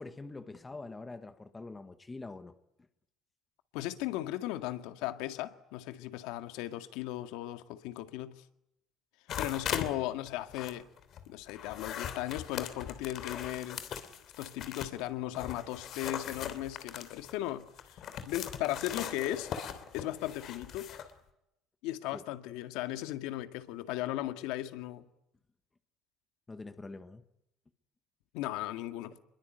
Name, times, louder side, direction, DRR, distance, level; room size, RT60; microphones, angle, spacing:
voice 1, 0.0-2.5 22.1-22.2 26.5-27.2, left 3 dB, 10° left, 1.2 m, -44 dB
voice 2, 3.7-8.4 9.4-10.9 11.3-14.1 14.4-19.5 19.9-20.9 21.8-25.0 28.3-29.2, left 14 dB, 80° left, 2.0 m, -37 dB
sound 1, 9.3-9.9 10.3-15.0 15.3-21.1, left 8 dB, 40° left, 3.1 m, -40 dB
27.5 x 22.0 x 9.2 m
cardioid pair, 175°, 0 cm